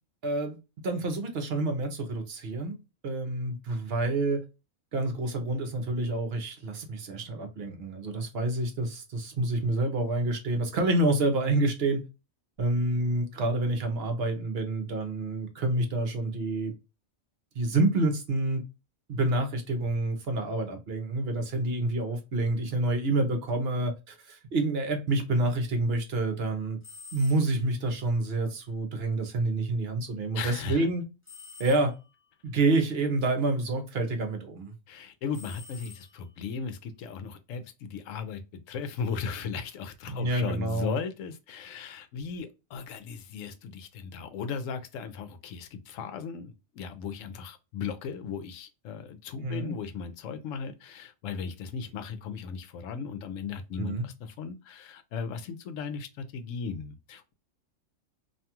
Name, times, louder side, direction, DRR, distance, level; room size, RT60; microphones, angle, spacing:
voice 1, 0.2-0.6 0.8-2.8 3.0-4.4 4.9-12.0 12.6-16.7 17.5-18.6 19.1-26.8 27.1-31.0 31.6-31.9 32.4-34.7 40.1-40.9 49.4-49.8 53.8-54.1, right 2 dB, 55° right, 0.9 m, -28 dB
sound 1, 26.8-27.7 31.3-32.2 35.3-36.5, left 4 dB, 10° left, 0.7 m, -49 dB
voice 2, 30.3-30.9 34.9-57.3, left 6 dB, 75° left, 0.9 m, -37 dB
2.6 x 2.3 x 2.8 m
omnidirectional pair, 1.4 m